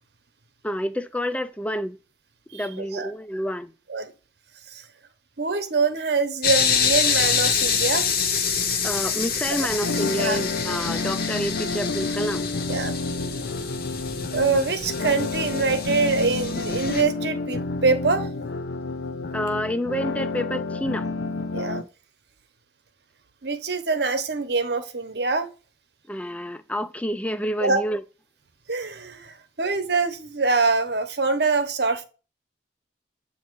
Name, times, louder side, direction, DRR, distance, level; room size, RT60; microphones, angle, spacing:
voice 1, 0.6-2.0 2.5-3.7 8.8-12.5 19.3-21.1 26.1-28.0, equal, 5° left, 0.3 m, -28 dB
voice 2, 5.4-8.1 10.2-10.4 12.7-13.0 14.3-18.3 21.5-21.8 23.4-25.5 27.6-27.8 28.7-32.0, right 4 dB, 60° right, 0.9 m, -24 dB
sound 1, 6.4-17.0, left 6 dB, 55° left, 1.0 m, -26 dB
sound 2, 9.8-21.8, left 3 dB, 75° left, 0.5 m, -30 dB
8.4 x 2.9 x 4.6 m
head